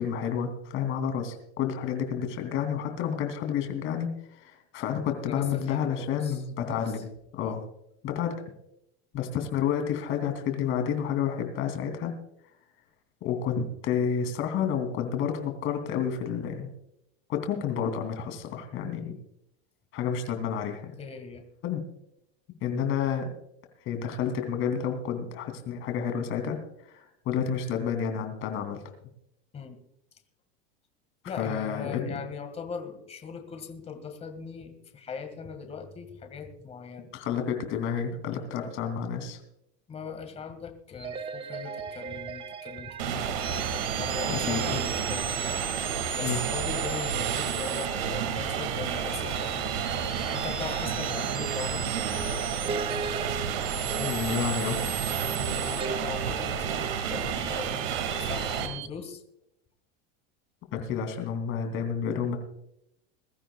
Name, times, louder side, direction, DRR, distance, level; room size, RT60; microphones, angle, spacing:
voice 1, 0.0-7.6 8.0-8.3 9.1-12.1 13.2-16.7 17.3-19.2 19.9-20.9 21.6-21.8 22.6-23.3 23.8-26.6 26.9-28.8 31.4-32.2 37.1-39.4 44.3-44.8 46.2-46.4 54.0-54.9 60.7-62.4, left 7 dB, 40° left, 5 dB, 3.0 m, -30 dB
voice 2, 5.3-6.8 7.4-7.6 21.0-21.4 29.5-29.8 31.3-37.1 39.9-43.3 44.0-45.3 46.1-49.7 50.3-52.0 55.1-59.2, left 5 dB, 20° left, 7 dB, 1.9 m, -40 dB
sound 1, 41.0-58.9, right 6 dB, 15° right, 0.6 m, -37 dB
sound 2, 43.0-58.7, right 7 dB, 70° right, 2.3 m, -31 dB
22.0 x 13.5 x 2.4 m, 0.77 s
supercardioid pair, 145°, 31 cm